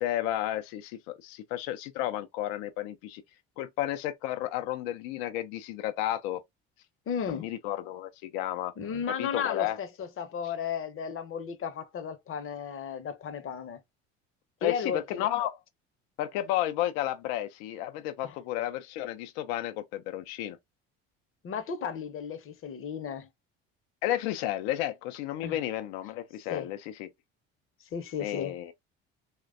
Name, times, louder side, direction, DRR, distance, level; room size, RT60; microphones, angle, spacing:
voice 1, 0.0-3.2 3.6-6.4 7.3-8.7 9.2-9.8 14.6-15.6 16.2-20.6 24.0-27.1 28.2-28.7, left 13 dB, 80° left, 0.5 m, -32 dB
voice 2, 7.1-7.5 8.8-13.8 14.6-15.3 18.2-18.4 21.4-23.3 25.4-25.6 26.5-26.7 27.9-28.6, left 7 dB, 45° left, 0.7 m, -34 dB
3.1 x 2.2 x 2.4 m
hypercardioid pair, 70°, 31 cm